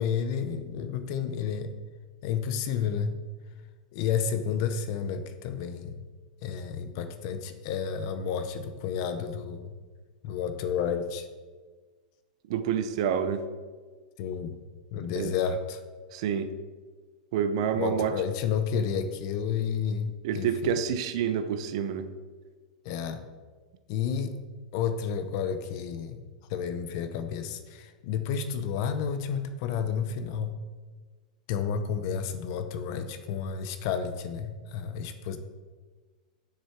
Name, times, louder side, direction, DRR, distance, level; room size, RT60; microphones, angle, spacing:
voice 1, 0.0-1.7 2.2-3.2 3.9-5.9 6.4-9.8 10.2-11.3 14.2-14.6 14.9-15.8 17.7-20.8 22.8-23.2 23.9-24.3 24.7-26.2 26.5-30.6 31.5-35.4, left 7 dB, 40° left, 9 dB, 0.7 m, -31 dB
voice 2, 12.5-13.4 15.1-15.3 16.1-16.5 17.3-18.1 20.2-22.1, right 8 dB, 45° right, 10 dB, 0.7 m, -28 dB
9.6 x 6.8 x 4.6 m, 1.4 s
supercardioid pair, 170°, 4 cm